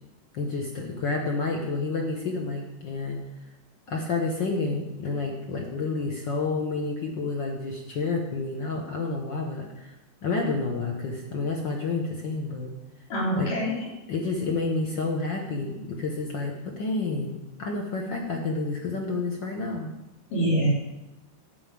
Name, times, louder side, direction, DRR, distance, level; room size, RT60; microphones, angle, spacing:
voice 1, 0.3-3.2 3.9-9.9 10.2-12.7 13.4-13.5 14.1-19.9, left 3 dB, 60° left, 1 dB, 1.2 m, -29 dB
voice 2, 13.1-13.9 20.3-20.7, right 1 dB, 85° left, -4 dB, 4.9 m, -25 dB
11.0 x 5.5 x 8.5 m, 0.95 s
omnidirectional pair, 3.7 m